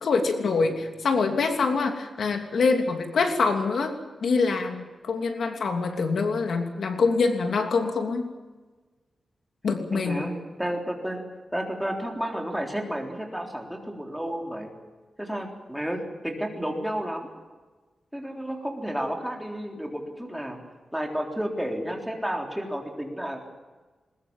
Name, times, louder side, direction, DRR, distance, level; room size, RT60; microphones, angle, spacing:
voice 1, 0.0-3.9 4.2-8.3 9.6-10.2, left 4 dB, 75° left, 4 dB, 2.9 m, -25 dB
voice 2, 9.9-11.2 11.5-14.7 15.2-17.3 18.1-20.6 20.9-23.5, equal, ahead, 1 dB, 3.7 m, -31 dB
21.5 x 20.5 x 7.3 m, 1.3 s
wide cardioid pair, 140°, 0 cm